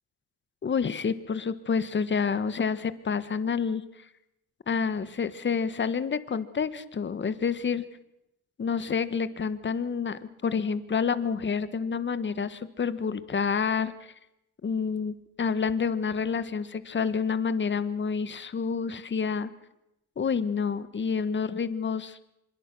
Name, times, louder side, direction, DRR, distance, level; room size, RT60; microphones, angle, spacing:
voice 1, 0.6-3.8 4.7-7.8 8.6-13.9 14.6-19.5 20.2-22.2, left 6 dB, 40° left, 13 dB, 1.5 m, -28 dB
25.0 x 22.0 x 6.3 m, 0.87 s
cardioid pair, 90°, 30 cm